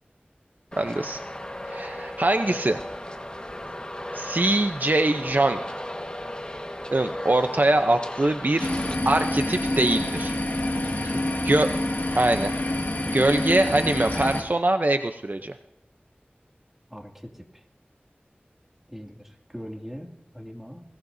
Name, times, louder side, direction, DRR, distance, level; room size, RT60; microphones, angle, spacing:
Traffic noise roadway noise, 0.7-9.0, left 1 dB, 25° left, 1.5 m, -36 dB
voice 1, 0.8-1.2 1.7-2.8 4.1-5.6 6.9-8.7 9.0-10.3 11.0-11.1 11.5-11.7 12.2-12.5 13.1-15.5, right 2 dB, 55° right, 6 dB, 0.7 m, -23 dB
sound 1, 8.6-14.4, left 1 dB, 60° left, 1.8 m, -27 dB
voice 2, 10.8-11.2 16.9-17.6 18.9-20.8, equal, 5° right, 1 dB, 2.4 m, -41 dB
21.0 x 18.0 x 2.7 m, 0.84 s
wide cardioid pair, 45°, 4 cm